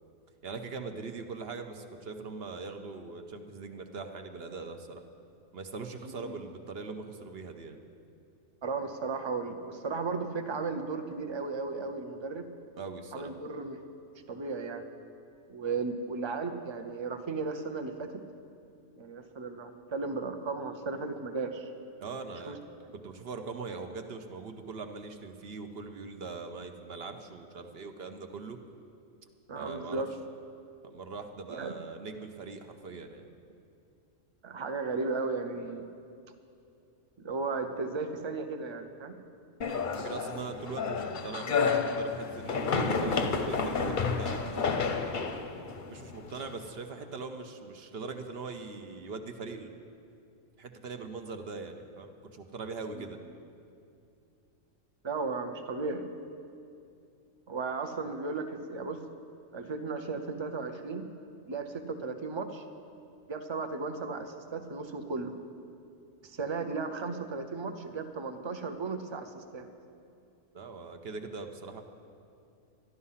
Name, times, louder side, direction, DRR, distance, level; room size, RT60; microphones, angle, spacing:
voice 1, 0.4-5.0 5.5-7.8 12.8-13.3 22.0-22.6 22.9-28.6 29.5-30.0 30.8-33.3 40.0-44.9 45.9-49.7 50.6-53.2 70.5-71.8, right 4 dB, 55° right, 6 dB, 0.9 m, -41 dB
voice 2, 6.0-6.4 8.6-12.5 13.1-13.8 14.3-14.9 15.5-18.1 19.0-21.7 22.4-22.6 29.5-30.1 31.5-31.7 34.4-35.9 37.2-39.1 52.9-53.1 55.0-56.1 57.5-59.0 59.5-61.0 61.5-62.6 63.3-65.3 66.2-69.7, right 4 dB, 30° right, 6 dB, 0.6 m, -35 dB
sound 1, 39.6-46.7, left 5 dB, 45° left, 0.7 m, -31 dB
13.0 x 11.0 x 5.6 m, 2.6 s
omnidirectional pair, 1.4 m